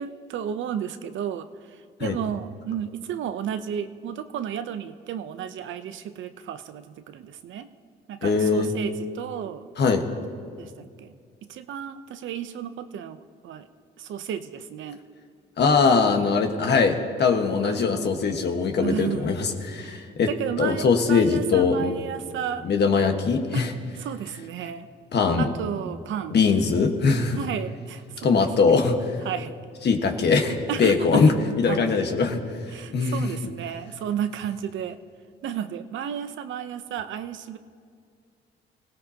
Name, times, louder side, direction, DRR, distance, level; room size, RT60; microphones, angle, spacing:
voice 1, 0.0-7.7 8.1-9.7 10.6-11.1 11.5-13.7 14.0-15.0 17.6-18.4 18.8-19.4 19.8-22.7 23.5-24.9 25.4-26.4 27.3-28.8 29.2-29.5 30.7-31.3 31.7-31.9 32.7-35.0 35.4-37.6, right 9 dB, 75° right, 10 dB, 0.7 m, -33 dB
voice 2, 8.2-8.7 9.8-10.0 15.6-20.3 20.6-21.9 22.6-23.7 25.1-25.5 26.3-27.4 28.2-29.0 29.8-32.4 32.9-33.3, left 5 dB, 60° left, 4 dB, 1.5 m, -21 dB
25.0 x 16.5 x 2.9 m, 2.2 s
cardioid pair, 90°, 20 cm